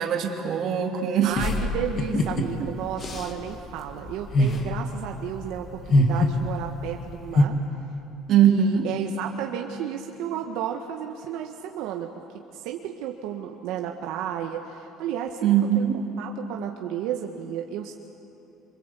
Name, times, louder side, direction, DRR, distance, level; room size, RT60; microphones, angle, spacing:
voice 1, 0.0-1.4 8.3-8.9 15.4-16.0, right 8 dB, 45° right, 2 dB, 2.7 m, -21 dB
voice 2, 1.2-7.6 8.4-12.2 12.5-15.9 16.2-17.9, right 10 dB, 70° right, 3 dB, 1.5 m, -33 dB
sound 1, 1.4-7.4, left 1 dB, 30° left, 1.8 m, -25 dB
26.5 x 25.0 x 8.4 m, 3.0 s
cardioid pair, 170°, 0 cm